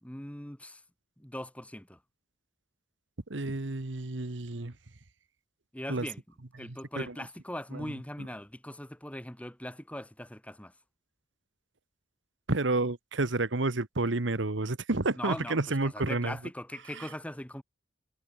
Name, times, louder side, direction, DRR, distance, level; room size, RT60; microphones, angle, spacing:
voice 1, 0.0-0.8 1.2-2.0 5.7-6.2 6.6-10.7 15.2-17.6, left 1 dB, 5° left, 1.5 m, -40 dB
voice 2, 3.3-4.7 5.9-6.1 6.6-7.1 7.7-7.9 12.5-16.4 17.0-17.1, right 2 dB, 70° right, 1.3 m, -30 dB
head